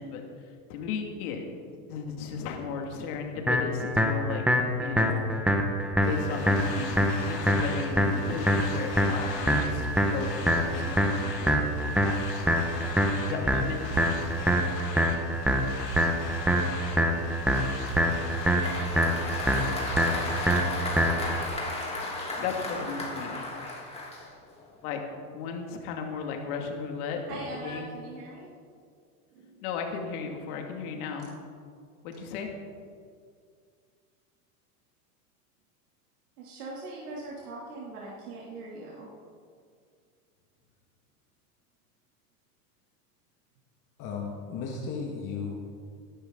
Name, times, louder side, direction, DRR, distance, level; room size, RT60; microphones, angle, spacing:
voice 1, 0.0-1.5 1.9-4.4 4.8-5.2 6.0-12.4 13.2-14.2 22.1-23.6 24.8-25.0 25.3-27.9 29.6-31.3 32.0-32.5, left 5 dB, 65° left, 3 dB, 2.6 m, -35 dB
sound 1, 3.5-21.5, equal, ahead, 1.4 m, -26 dB
sound 2, 6.0-20.6, left 4 dB, 90° left, 2.7 m, -40 dB
Applause, 17.5-24.7, left 2 dB, 15° left, 3.1 m, -35 dB
voice 2, 17.8-18.2 27.3-28.5 29.3-29.6 36.4-39.1, right 2 dB, 70° right, -4 dB, 3.1 m, -41 dB
voice 3, 44.0-45.5, left 5 dB, 40° left, -1 dB, 2.0 m, -35 dB
17.5 x 11.5 x 3.9 m, 2.1 s
hypercardioid pair, 105°, 47 cm